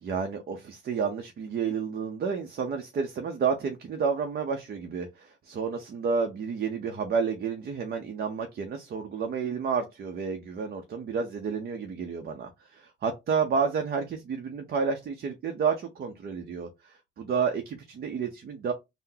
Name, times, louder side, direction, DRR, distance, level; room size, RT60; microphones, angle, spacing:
voice 1, 0.0-18.7, right 5 dB, 55° right, 0.6 m, -30 dB
3.7 x 2.0 x 2.7 m
cardioid pair, 90°, 20 cm